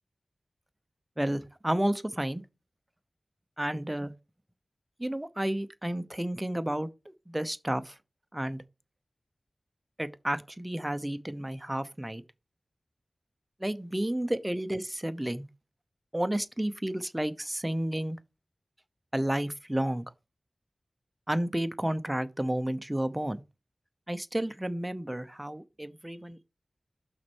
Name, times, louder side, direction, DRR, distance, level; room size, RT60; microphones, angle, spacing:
voice 1, 1.2-2.4 3.6-4.1 5.0-6.9 7.3-7.9 8.3-8.6 10.0-12.2 13.6-15.5 16.1-18.2 19.1-20.1 21.3-23.4 24.1-26.4, right 1 dB, 15° right, 0.8 m, -31 dB
5.9 x 4.4 x 6.1 m
wide cardioid pair, 50°, 0 cm